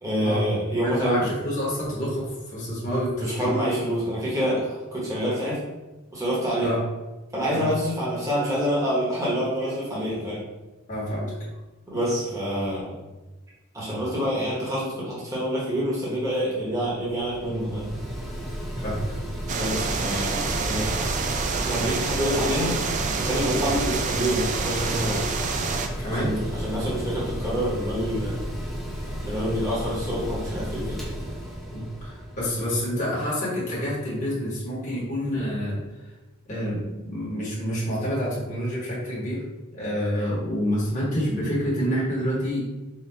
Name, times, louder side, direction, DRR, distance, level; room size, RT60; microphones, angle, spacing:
voice 1, 0.0-1.2 3.2-5.6 6.1-6.7 7.3-10.4 11.9-12.9 13.7-17.9 19.5-20.9 21.7-22.7 23.2-25.2 26.1-28.4 29.3-31.0, equal, 15° right, -7 dB, 1.1 m, -27 dB
voice 2, 0.8-3.5 6.6-6.8 7.5-7.7 10.9-11.3 18.8-19.0 26.0-26.4 31.7-35.8 36.5-39.4 39.7-42.6, equal, 35° left, -8 dB, 1.3 m, -28 dB
Mechanical fan, 16.6-32.9, equal, ahead, 0.7 m, -33 dB
sound 1, 19.5-25.9, right 4 dB, 35° right, 0.3 m, -28 dB
4.0 x 2.4 x 3.3 m, 1.1 s
head